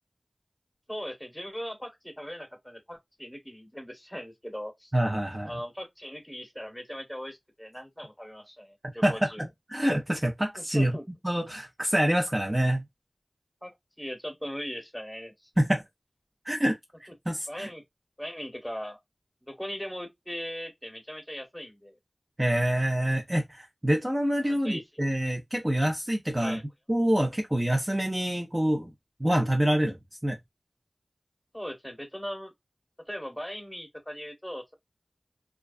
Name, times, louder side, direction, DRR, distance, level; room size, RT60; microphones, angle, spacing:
voice 1, 0.9-4.9 5.4-9.4 10.7-11.0 13.6-15.5 17.5-17.8 18.2-19.0 19.4-22.0 24.4-24.8 26.3-26.6 31.5-32.5 33.1-34.7, equal, 5° left, 1.1 m, -39 dB
voice 2, 4.9-5.6 8.8-11.0 11.2-12.8 15.6-15.8 16.4-17.7 22.4-26.6 26.9-28.9 29.2-30.4, right 1 dB, 25° right, 0.5 m, -26 dB
2.3 x 2.2 x 2.4 m
wide cardioid pair, 40°, 0 cm